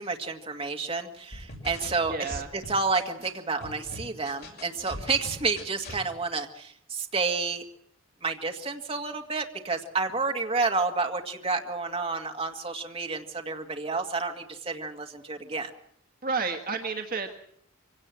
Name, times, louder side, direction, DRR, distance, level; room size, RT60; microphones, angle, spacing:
voice 1, 0.0-7.6 8.2-15.7, right 4 dB, 30° right, 3 dB, 2.0 m, -30 dB
sound 1, 1.3-3.3 3.6-6.0, left 1 dB, 55° left, 6.6 m, -41 dB
voice 2, 2.1-2.5 16.2-17.3, right 4 dB, 45° right, 4 dB, 1.6 m, -30 dB
24.5 x 17.5 x 7.6 m, 0.67 s
head